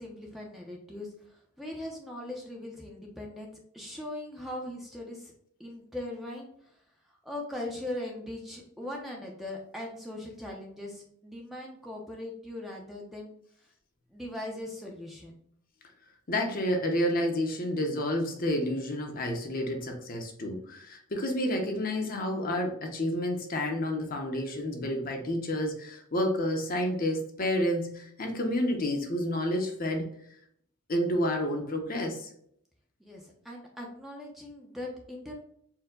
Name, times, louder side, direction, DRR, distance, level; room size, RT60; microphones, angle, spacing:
voice 1, 0.0-5.3 5.6-6.8 7.1-13.3 14.1-15.3 33.0-35.3, left 1 dB, ahead, -1 dB, 0.5 m, -40 dB
voice 2, 16.3-30.1 30.9-32.3, left 1 dB, 40° left, 2 dB, 0.7 m, -30 dB
4.5 x 2.2 x 3.6 m, 0.68 s
head